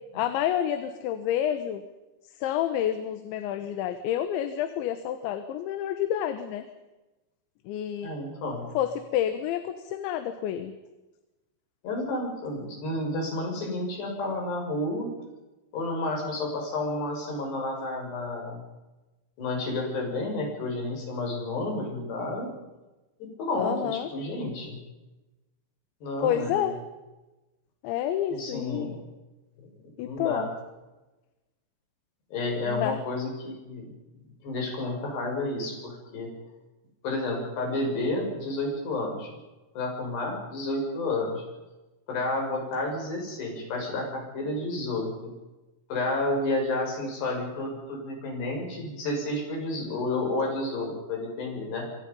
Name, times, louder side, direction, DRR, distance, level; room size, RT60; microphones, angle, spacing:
voice 1, 0.1-1.8 2.4-6.7 7.7-8.1 8.8-10.7 23.6-24.1 26.2-26.8 27.8-28.9 30.0-30.5 32.7-33.0, left 10 dB, 85° left, 9 dB, 3.5 m, -29 dB
voice 2, 8.0-8.7 11.8-15.1 15.7-18.6 19.4-22.5 23.2-24.8 26.0-26.7 28.3-29.0 30.0-30.5 32.3-33.9 34.4-36.3 37.0-39.3 39.7-41.4 42.1-45.3 45.9-51.9, left 2 dB, 65° left, 1 dB, 8.5 m, -31 dB
26.5 x 25.5 x 5.5 m, 1.1 s
omnidirectional pair, 5.2 m